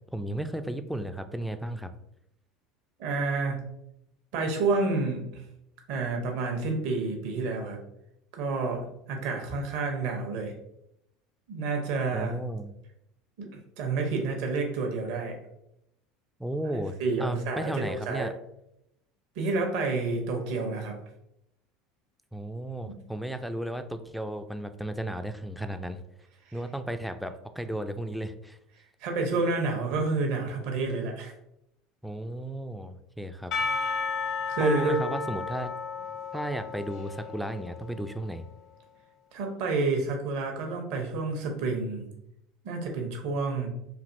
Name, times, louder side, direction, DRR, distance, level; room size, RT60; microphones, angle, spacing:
voice 1, 0.1-1.9 12.1-12.7 16.4-18.3 22.3-26.0 26.5-28.6 32.0-33.5 34.6-35.7 36.3-38.4, right 1 dB, ahead, 8 dB, 0.3 m, -34 dB
voice 2, 3.0-3.6 4.3-5.4 5.9-7.8 8.3-10.5 11.5-12.3 13.4-15.4 17.0-18.3 19.4-21.0 22.9-23.0 26.5-26.6 29.0-31.3 34.5-35.0 39.3-42.1 42.6-43.7, right 3 dB, 65° right, 3 dB, 0.7 m, -29 dB
Percussion / Church bell, 33.5-38.3, left 5 dB, 55° left, 0.8 m, -33 dB
3.2 x 2.5 x 2.5 m, 0.81 s
hypercardioid pair, 75°, 0 cm